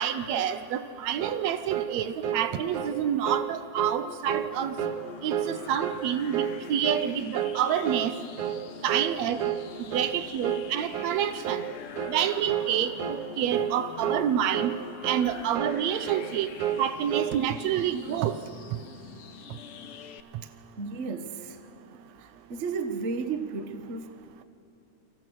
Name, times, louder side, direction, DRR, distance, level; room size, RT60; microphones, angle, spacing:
voice 1, 0.0-4.8 5.2-6.4 6.7-8.1 8.8-9.4 9.9-11.6 12.1-14.8 15.0-16.5 16.8-18.4, right 9 dB, 70° right, 11 dB, 2.1 m, -28 dB
sound 1, 1.2-1.4 1.7-1.9 2.2-2.5 2.7-3.0 3.3-3.5 3.8-4.0 4.3-4.5 4.8-5.0 5.3-5.5 5.8-6.0 6.3-6.6 6.8-7.1 7.3-7.6 7.9-8.1 8.4-8.6 8.9-9.1 9.4-9.6 9.9-10.1 10.4-10.7 10.9-11.2 11.4-11.7 12.0-12.2 12.5-12.7 13.0-13.2 13.5-13.7 14.0-14.2 14.5-14.8 15.0-15.3 15.5-15.8 16.1-16.3 16.6-17.3, right 10 dB, 90° right, 2.8 m, -30 dB
sound 2, 4.2-20.2, left 9 dB, 65° left, 1.5 m, -45 dB
voice 2, 20.8-21.8 22.2-24.4, right 4 dB, 50° right, 8 dB, 0.9 m, -34 dB
29.0 x 25.5 x 6.3 m, 2.9 s
omnidirectional pair, 3.4 m